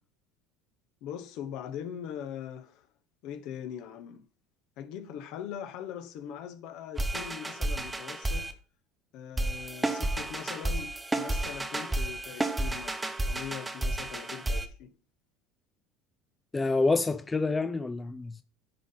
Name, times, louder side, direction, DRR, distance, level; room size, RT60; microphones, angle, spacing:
voice 1, 1.0-2.9 3.2-4.2 4.8-8.5 9.1-13.0 13.3-14.9, left 9 dB, 60° left, 0.9 m, -41 dB
sound 1, 7.0-8.5 9.4-14.7, right 2 dB, 15° right, 0.9 m, -31 dB
voice 2, 16.5-18.4, left 3 dB, 20° left, 0.4 m, -27 dB
10.0 x 4.0 x 3.9 m
hypercardioid pair, 80°, 0 cm